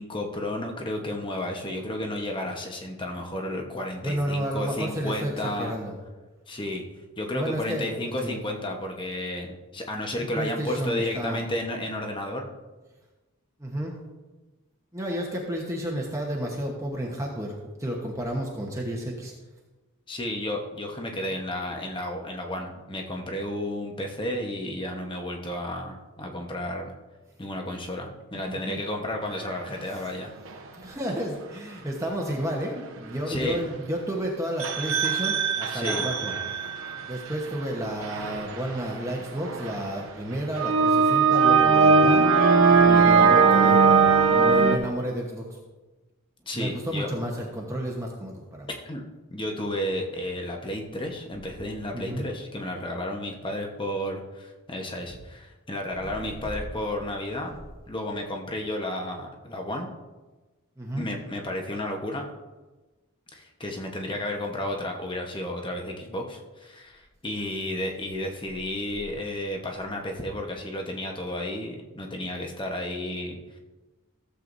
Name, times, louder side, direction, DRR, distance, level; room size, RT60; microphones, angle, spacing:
voice 1, 0.0-5.8 6.5-6.8 7.2-12.5 20.1-26.9 27.4-30.3 33.3-33.6 35.7-36.1 42.9-43.1 46.5-47.1 48.8-57.6 57.9-59.9 61.0-62.2 63.3-73.6, left 1 dB, 20° left, 2 dB, 1.1 m, -32 dB
voice 2, 4.0-5.9 7.3-8.4 10.1-11.4 13.6-14.0 14.9-19.3 28.5-28.8 29.7-30.0 30.8-36.3 37.1-42.3 42.9-45.6 46.5-48.7 51.9-52.3 56.0-56.1 60.8-61.1, right 1 dB, 15° right, -1 dB, 1.0 m, -31 dB
sound 1, 30.5-30.6 34.6-37.0 37.5-39.9 40.5-44.8, right 5 dB, 65° right, 0.9 m, -20 dB
15.5 x 7.7 x 2.6 m, 1.2 s
head